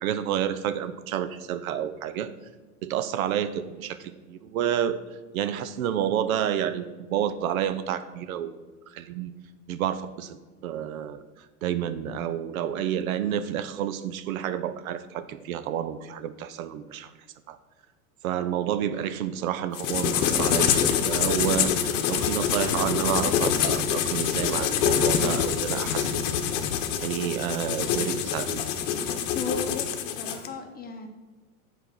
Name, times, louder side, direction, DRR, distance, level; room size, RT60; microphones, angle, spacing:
voice 1, 0.0-2.3 2.8-5.0 5.3-8.5 8.9-9.3 9.7-10.4 10.6-11.2 11.6-17.1 17.5-17.6 18.2-26.5 27.0-28.6, right 10 dB, 75° right, 12 dB, 0.7 m, -29 dB
sound 1, 19.7-30.5, left 8 dB, 60° left, 0.9 m, -25 dB
voice 2, 29.1-31.1, left 4 dB, 20° left, 5 dB, 1.0 m, -36 dB
6.8 x 4.4 x 6.1 m, 1.3 s
hypercardioid pair, 100°, 42 cm